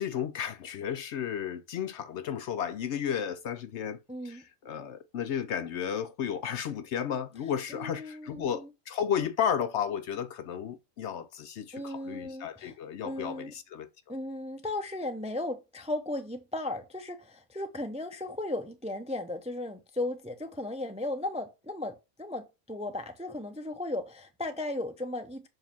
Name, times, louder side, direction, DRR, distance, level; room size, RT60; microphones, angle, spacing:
voice 1, 0.0-4.0 4.2-13.9, left 8 dB, 65° left, 0.8 m, -33 dB
voice 2, 4.1-4.4 7.7-8.6 11.7-12.7 13.0-13.5 14.1-25.5, left 1 dB, 10° right, 0.4 m, -36 dB
7.2 x 2.7 x 5.7 m
omnidirectional pair, 1.4 m